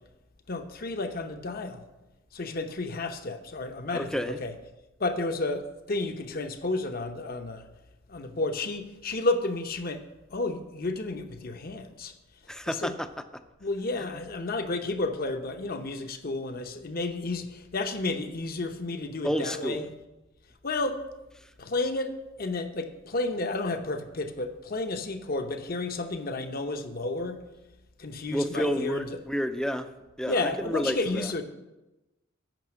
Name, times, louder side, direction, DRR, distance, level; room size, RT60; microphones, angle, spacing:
voice 1, 0.5-1.8 2.3-4.6 5.0-7.7 8.1-10.1 10.3-12.1 12.7-12.9 13.6-19.9 20.6-21.0 21.6-27.4 28.0-29.2 30.3-31.4, left 2 dB, 50° left, 7 dB, 0.8 m, -31 dB
voice 2, 3.9-4.4 12.5-13.1 19.2-19.8 28.3-29.9 30.2-31.3, equal, 5° left, 9 dB, 0.5 m, -30 dB
9.1 x 5.8 x 7.5 m, 1.0 s
head